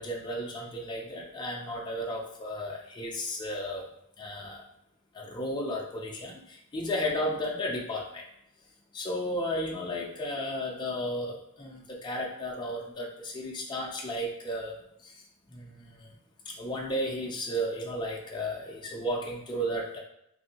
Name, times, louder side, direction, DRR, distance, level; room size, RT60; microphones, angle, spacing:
voice 1, 0.0-3.9 4.2-4.6 5.1-8.2 8.9-15.2 15.5-16.1 16.5-20.0, equal, 20° left, -2 dB, 0.4 m, -34 dB
3.2 x 2.6 x 2.8 m, 0.79 s
head